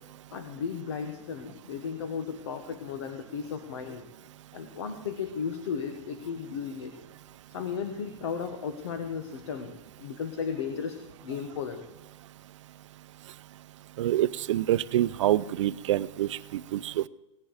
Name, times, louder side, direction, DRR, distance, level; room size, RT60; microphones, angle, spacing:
voice 1, 0.3-4.0 4.5-6.9 7.5-9.7 10.0-11.8, left 6 dB, 65° left, 7 dB, 1.3 m, -35 dB
voice 2, 14.0-17.1, right 13 dB, 80° right, 16 dB, 0.5 m, -26 dB
17.5 x 10.5 x 4.9 m, 1.0 s
supercardioid pair, 180°, 15 cm